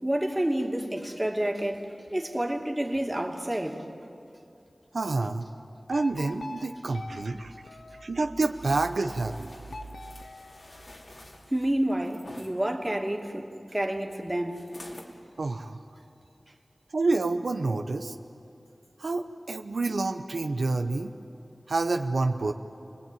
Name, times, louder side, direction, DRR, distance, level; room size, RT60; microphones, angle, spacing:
voice 1, 0.0-3.9 11.5-14.7, right 1 dB, 20° right, 2 dB, 2.5 m, -29 dB
voice 2, 4.9-5.5 5.9-7.5 8.0-9.5 15.4-15.8 16.9-18.2 19.0-21.1 21.7-22.5, right 3 dB, 85° right, 6 dB, 0.9 m, -28 dB
sound 1, 5.9-8.6 9.7-11.4, left 3 dB, 85° left, 0.9 m, -44 dB
sound 2, 8.5-12.5 14.5-15.1 15.7-15.8, left 1 dB, 60° left, 3.2 m, -49 dB
29.0 x 20.0 x 9.2 m, 2.6 s
wide cardioid pair, 50°, 0 cm